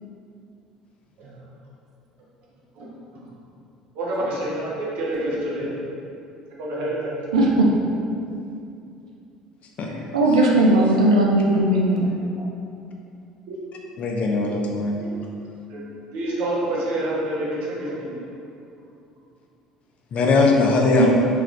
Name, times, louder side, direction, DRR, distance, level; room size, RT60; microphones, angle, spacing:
voice 1, 3.9-5.7 6.6-7.1 13.5-13.6 15.0-15.1 15.7-15.8 16.1-17.9, right 1 dB, 55° right, -5 dB, 0.9 m, -27 dB
voice 2, 10.1-12.0 21.0-21.1, right 1 dB, 75° right, -2 dB, 0.4 m, -17 dB
voice 3, 14.0-15.0 20.1-21.1, left 3 dB, 45° left, 0 dB, 0.5 m, -20 dB
3.6 x 3.4 x 3.2 m, 2.5 s
figure-of-eight pair, 60°, 3 cm